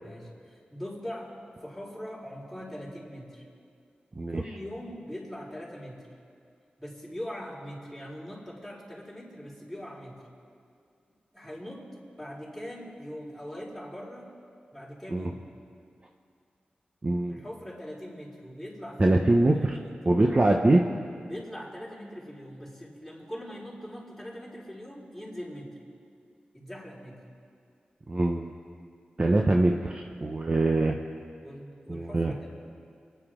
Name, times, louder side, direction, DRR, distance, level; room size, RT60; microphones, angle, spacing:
voice 1, 0.0-1.3 1.6-3.4 4.3-6.1 6.8-10.2 11.3-11.9 12.2-14.3 14.7-15.4 17.3-19.2 19.5-20.4 21.3-25.8 26.5-27.2 31.4-32.5, equal, ahead, -6 dB, 4.5 m, -41 dB
voice 2, 17.0-17.4 19.0-19.8 20.1-20.8 28.1-28.5 29.2-30.9 31.9-32.3, right 2 dB, 35° right, 1 dB, 0.9 m, -23 dB
29.5 x 10.0 x 3.8 m, 2.3 s
cardioid pair, 60°, 3 cm